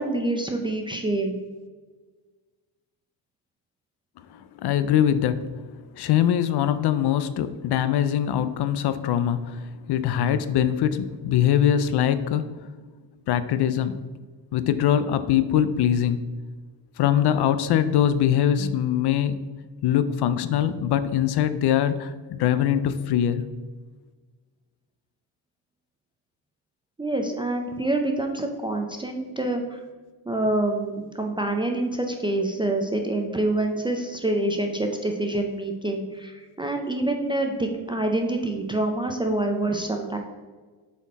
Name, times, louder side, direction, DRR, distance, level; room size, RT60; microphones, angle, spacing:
voice 1, 0.0-1.4 27.0-29.8 30.3-40.2, right 2 dB, 10° right, 3 dB, 0.3 m, -26 dB
voice 2, 4.3-5.4 6.0-12.5 13.3-14.0 14.5-16.2 17.0-19.4 19.8-23.5, left 10 dB, 60° left, 12 dB, 0.5 m, -22 dB
7.2 x 4.3 x 4.1 m, 1.4 s
cardioid pair, 155°, 45 cm